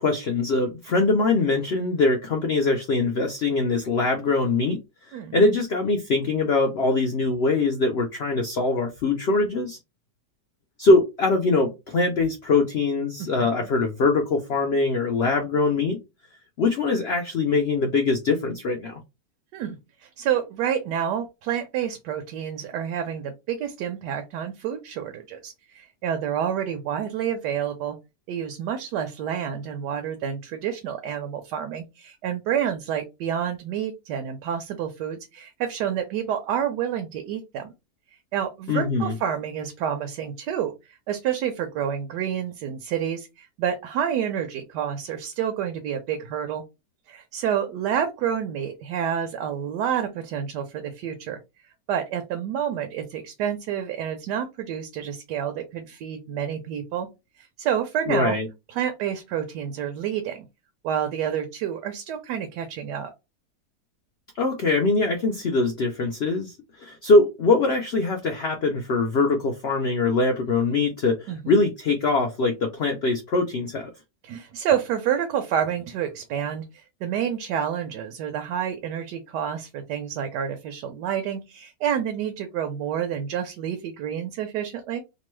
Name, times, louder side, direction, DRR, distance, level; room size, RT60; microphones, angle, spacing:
voice 1, 0.0-4.8 5.1-9.8 10.8-16.0 16.6-19.0 38.7-39.1 58.1-58.5 64.4-73.9, left 3 dB, 75° left, 3 dB, 0.5 m, -22 dB
voice 2, 13.2-13.7 19.5-28.0 28.3-37.7 38.3-46.6 47.1-51.4 51.9-57.1 57.4-58.4 58.7-60.5 60.8-63.1 71.3-71.6 74.2-85.1, right 9 dB, 85° right, 6 dB, 1.2 m, -29 dB
3.0 x 2.2 x 3.0 m, 0.24 s
omnidirectional pair, 1.8 m